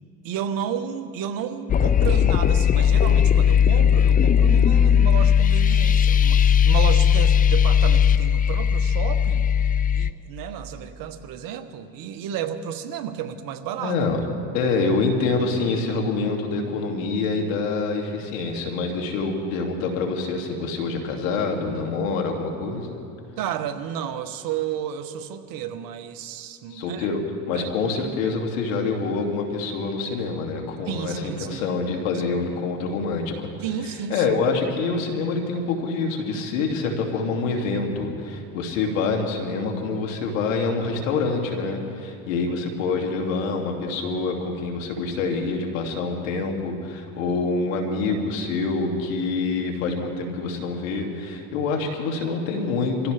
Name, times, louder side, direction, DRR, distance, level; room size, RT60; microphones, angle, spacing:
voice 1, 0.2-9.5 9.9-14.0 23.3-27.1 27.5-27.7 30.8-31.8 32.3-32.5 33.6-34.2, right 9 dB, 60° right, 9 dB, 1.3 m, -32 dB
sound 1, 1.7-10.1, left 8 dB, 25° left, 0.4 m, -18 dB
voice 2, 13.8-14.2 14.5-23.0 26.7-27.2 27.5-33.5 34.1-53.1, left 4 dB, 80° left, 2 dB, 2.7 m, -26 dB
26.5 x 15.5 x 3.4 m, 2.8 s
supercardioid pair, 95°, 39 cm